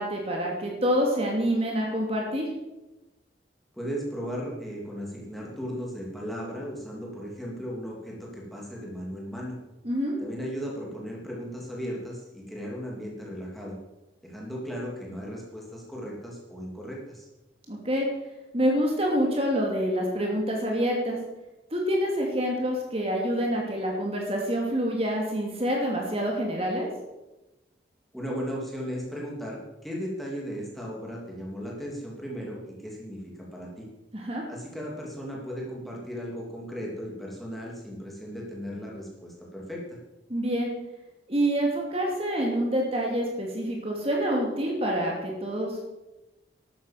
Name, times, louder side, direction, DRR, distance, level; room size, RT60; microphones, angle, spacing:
voice 1, 0.0-2.5 9.8-10.2 17.7-18.1 18.5-21.2 21.7-26.9 34.1-34.4 40.3-40.7 41.3-45.8, equal, 30° right, -1 dB, 2.8 m, -27 dB
voice 2, 3.7-9.6 10.2-13.7 14.2-17.3 28.1-33.2 33.5-33.9 34.5-40.0, equal, ahead, -3 dB, 3.1 m, -36 dB
12.5 x 9.6 x 7.7 m, 1.0 s
head